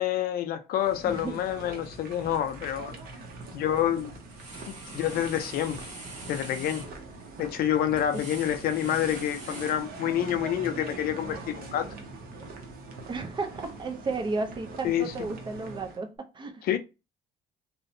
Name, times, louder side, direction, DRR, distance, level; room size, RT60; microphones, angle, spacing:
voice 1, 0.0-3.0 3.5-4.1 4.7-5.8 6.3-6.8 7.4-11.9 14.8-15.1 16.6-16.8, left 10 dB, 65° left, 0.4 m, -28 dB
sound 1, 0.8-16.0, right 3 dB, 60° right, 0.8 m, -43 dB
voice 2, 1.1-1.4 8.1-8.2 13.1-16.6, right 3 dB, 30° right, 0.4 m, -33 dB
sound 2, 3.1-3.4 3.8-10.3, right 2 dB, 45° right, 1.2 m, -44 dB
2.6 x 2.1 x 2.5 m
cardioid pair, 110°, 17 cm